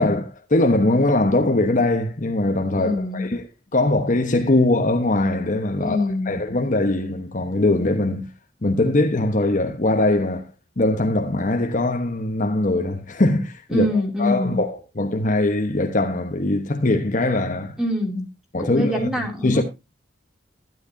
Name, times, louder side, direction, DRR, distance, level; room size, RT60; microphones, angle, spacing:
voice 1, 0.0-3.4 3.7-8.3 8.6-10.5 10.8-13.9 14.2-17.8 18.5-19.1 19.4-19.6, left 2 dB, 45° left, 1.1 m, -21 dB
voice 2, 2.8-3.3 5.8-6.3 13.7-14.6 17.8-18.3 18.6-19.6, left 1 dB, 5° right, 2.8 m, -24 dB
12.0 x 10.5 x 2.7 m
head